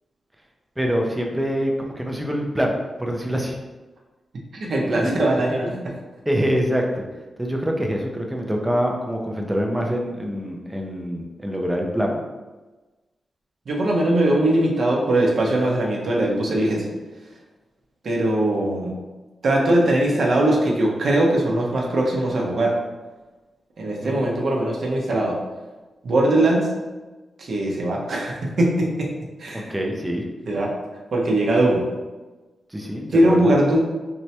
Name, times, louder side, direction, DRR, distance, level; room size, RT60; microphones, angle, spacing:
voice 1, 0.8-3.6 4.9-5.1 5.6-5.8 6.3-7.0 7.4-12.2 24.0-24.2 29.5-30.3 32.7-33.5, equal, 5° right, 0 dB, 0.4 m, -25 dB
voice 2, 4.5-5.9 13.7-16.8 18.0-18.9 19.4-22.7 23.8-25.4 26.0-26.7 27.4-29.1 29.4-29.7 30.5-30.7 31.1-31.8 33.1-33.8, right 1 dB, 55° right, -2 dB, 0.6 m, -20 dB
4.5 x 2.1 x 2.7 m, 1.2 s
wide cardioid pair, 160°, 0 cm